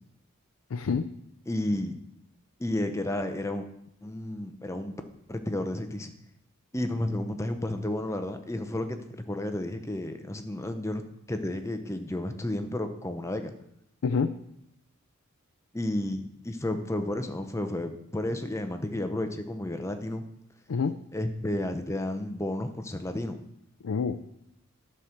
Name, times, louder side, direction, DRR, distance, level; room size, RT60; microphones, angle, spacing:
voice 1, 0.7-1.1 14.0-14.3 20.7-21.0 23.8-24.4, left 5 dB, 80° left, 8 dB, 0.5 m, -27 dB
voice 2, 1.5-2.0 2.6-3.7 4.0-4.9 5.3-6.1 6.7-9.0 9.3-11.0 11.3-13.5 15.7-20.2 21.1-23.4, left 1 dB, 15° left, 7 dB, 0.6 m, -32 dB
11.5 x 4.5 x 6.5 m, 0.76 s
head